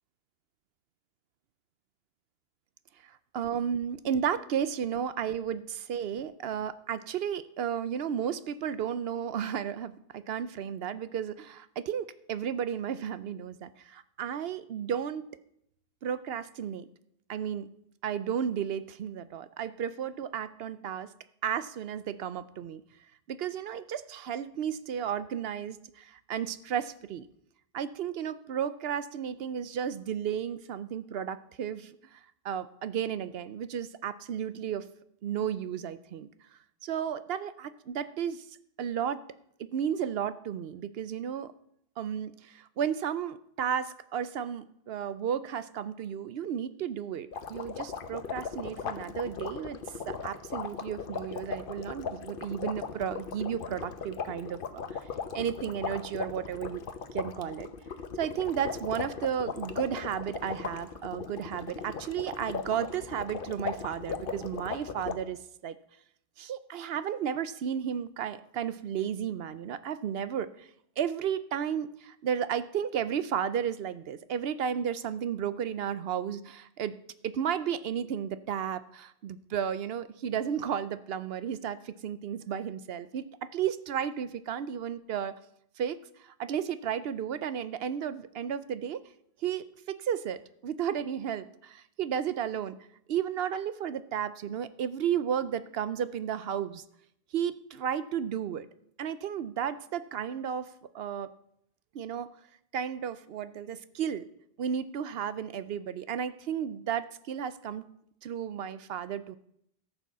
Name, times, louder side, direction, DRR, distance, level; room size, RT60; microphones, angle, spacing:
voice 1, 3.0-15.3 16.0-16.9 17.3-17.7 18.0-21.1 21.4-22.8 23.3-27.3 27.7-32.2 32.4-34.9 35.2-36.3 36.8-38.4 38.8-39.2 39.6-41.5 42.0-49.8 50.1-55.0 55.3-56.8 57.1-57.7 58.2-65.8 66.4-70.7 71.0-77.0 77.2-85.4 85.8-89.0 89.4-92.7 93.1-96.8 97.3-98.7 99.0-100.7 100.9-101.3 101.9-102.3 102.7-104.3 104.6-107.8 108.2-109.4, right 8 dB, 70° right, 14 dB, 0.8 m, -33 dB
sound 1, 47.3-65.1, left 6 dB, 60° left, 1.0 m, -38 dB
13.5 x 6.9 x 6.1 m, 0.73 s
omnidirectional pair, 1.1 m